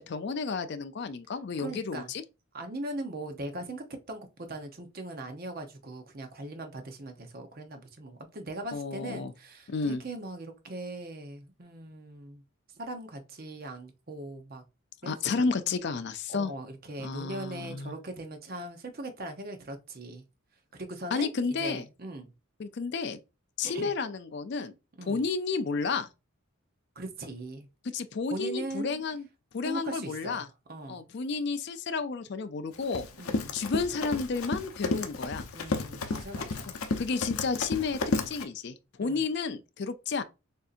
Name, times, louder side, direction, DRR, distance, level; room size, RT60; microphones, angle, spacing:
voice 1, 0.1-2.2 8.7-9.3 9.7-10.0 15.0-16.5 17.0-18.0 21.1-21.9 22.6-23.2 23.6-24.7 25.0-26.1 27.9-29.3 29.5-30.5 30.9-33.0 33.5-35.5 36.7-38.0 38.3-40.2, left 4 dB, 50° left, 0.4 m, -31 dB
voice 2, 1.6-2.1 2.5-12.4 12.8-14.6 15.0-15.5 16.3-20.2 20.7-21.3 21.6-22.3 23.6-23.9 25.0-25.3 27.0-27.7 28.3-28.9 29.6-30.4 30.7-31.0 33.2-33.6 35.5-36.7 39.0-39.2, right 2 dB, 45° right, 0.8 m, -40 dB
Run, 32.7-38.4, left 3 dB, 85° left, 0.7 m, -32 dB
6.5 x 2.7 x 2.5 m
head